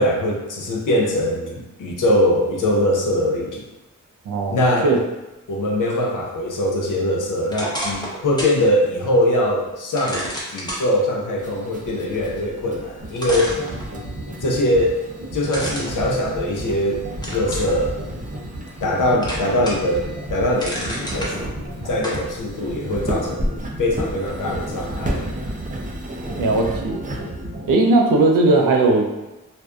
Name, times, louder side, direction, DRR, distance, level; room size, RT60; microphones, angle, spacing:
voice 1, 0.0-3.6 4.5-4.9 5.5-13.5 14.4-15.0 15.3-17.0 17.3-17.9 18.8-20.0 20.3-21.3 21.9-23.5 23.8-25.2, left 1 dB, 70° left, -1 dB, 0.6 m, -22 dB
voice 2, 4.3-4.6 4.8-5.0 26.4-27.0 27.7-29.2, right 2 dB, 80° right, 1 dB, 0.5 m, -17 dB
sound 1, 7.5-8.6 9.0-9.1 10.0-10.8 12.6-12.7 13.2-14.3 15.5-16.8 17.2-17.7 18.3-18.9 19.2-20.0 20.3-21.3 22.0-22.2, equal, 15° left, 0.7 m, -30 dB
sound 2, 11.4-27.4, right 1 dB, 25° right, 0.4 m, -34 dB
sound 3, 13.0-27.7, right 1 dB, 45° right, 0.9 m, -33 dB
2.5 x 2.2 x 2.3 m, 1.0 s
cardioid pair, 55°, 33 cm